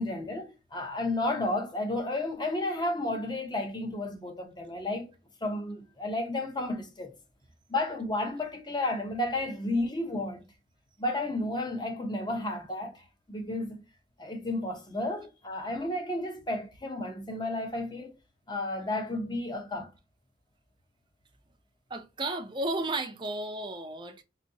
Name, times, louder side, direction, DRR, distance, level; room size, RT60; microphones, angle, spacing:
voice 1, 0.0-5.1 5.4-7.1 7.7-10.4 11.0-13.8 14.2-18.2 18.5-19.9, left 2 dB, 25° left, 0.7 m, -32 dB
voice 2, 21.9-24.2, right 2 dB, 25° right, 0.4 m, -33 dB
4.0 x 2.7 x 2.7 m
head